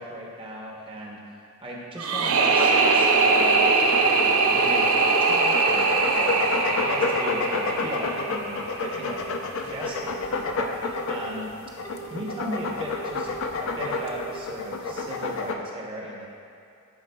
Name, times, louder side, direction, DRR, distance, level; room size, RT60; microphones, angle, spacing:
voice 1, 0.0-6.4 6.7-9.4 9.7-11.5 12.1-13.3 13.6-16.3, equal, 25° right, -3 dB, 0.8 m, -36 dB
sound 1, 2.0-9.0, right 4 dB, 70° right, 0.4 m, -22 dB
sound 2, 2.6-15.6, left 3 dB, 60° left, 0.4 m, -30 dB
Telephone, 6.8-7.4 7.8-8.4 8.8-9.4 9.8-10.4 10.8-11.4 11.8-12.4 12.8-13.4 13.8-14.4, right 6 dB, 15° left, 0.7 m, -42 dB
9.5 x 4.9 x 2.3 m, 2.5 s
head